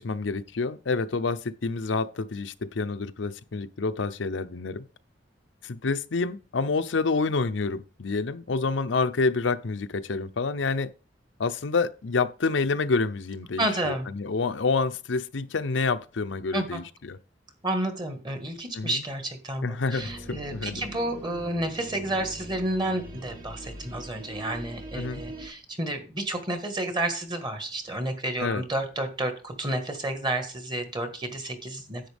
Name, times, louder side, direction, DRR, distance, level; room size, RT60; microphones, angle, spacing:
voice 1, 0.0-4.9 5.6-10.9 11.4-17.2 18.8-19.0 19.6-20.8 24.9-25.2 28.4-28.6, left 4 dB, 80° left, 0.6 m, -28 dB
voice 2, 13.6-14.1 16.5-16.8 17.6-32.1, right 1 dB, 25° right, 1.6 m, -31 dB
sound 1, 20.0-25.5, right 1 dB, 50° right, 1.7 m, -42 dB
10.5 x 7.8 x 3.5 m
head